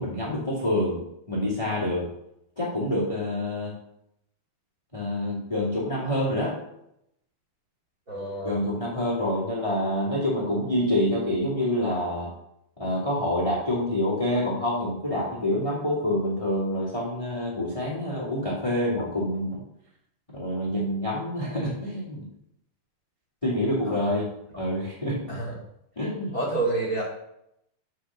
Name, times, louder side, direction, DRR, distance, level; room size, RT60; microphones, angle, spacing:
voice 1, 0.0-2.1 2.6-3.8 4.9-6.6 8.4-12.3 12.8-19.6 20.3-22.3 23.4-24.3 24.5-25.4 25.9-26.3, left 1 dB, 15° left, -5 dB, 1.5 m, -27 dB
voice 2, 8.1-8.6 23.8-24.1 25.3-25.6 26.3-27.0, right 2 dB, 25° right, -4 dB, 2.2 m, -29 dB
8.5 x 5.6 x 6.2 m, 0.78 s
omnidirectional pair, 4.6 m